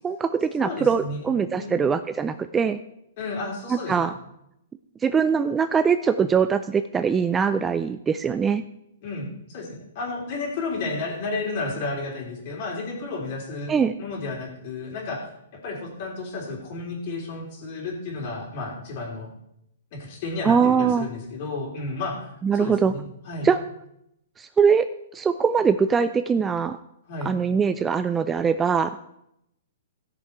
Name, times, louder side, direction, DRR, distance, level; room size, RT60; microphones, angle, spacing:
voice 1, 0.0-2.8 3.7-4.1 5.0-8.6 13.7-13.9 20.4-21.1 22.4-22.9 23.4-23.6 24.4-24.9 25.1-26.8 27.2-29.1, right 6 dB, 10° right, 11 dB, 0.3 m, -22 dB
voice 2, 0.6-1.3 1.5-1.8 3.2-4.0 9.0-15.3 15.6-19.3 19.9-22.3 22.6-23.5 27.1-27.3, left 3 dB, 45° left, 0 dB, 3.2 m, -32 dB
16.0 x 6.6 x 4.6 m, 0.80 s
hypercardioid pair, 155°, 0 cm